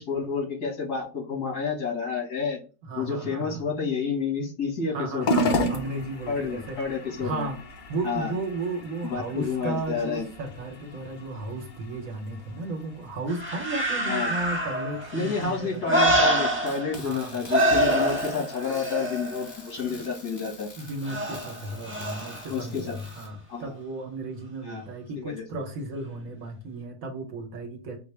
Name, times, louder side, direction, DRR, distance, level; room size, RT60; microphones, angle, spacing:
voice 1, 0.0-2.6 3.0-5.5 6.3-7.5 8.0-8.3 9.0-10.3 14.1-14.3 15.1-20.7 22.5-23.0 23.5-23.7 24.7-24.9 25.2-25.4, left 5 dB, 80° left, -2 dB, 2.2 m, -30 dB
voice 2, 2.8-3.7 4.9-7.6 7.9-15.8 17.0-17.4 20.8-28.0, right 2 dB, 60° right, 3 dB, 1.3 m, -34 dB
sound 1, 5.2-23.8, left 1 dB, 60° left, 0.5 m, -36 dB
sound 2, 13.3-17.2 17.5-20.0 21.0-22.5 23.0-23.1, right 1 dB, 10° right, 0.7 m, -26 dB
sound 3, 16.7-23.3, left 2 dB, 40° left, 1.5 m, -47 dB
5.5 x 2.0 x 3.2 m, 0.36 s
omnidirectional pair, 1.7 m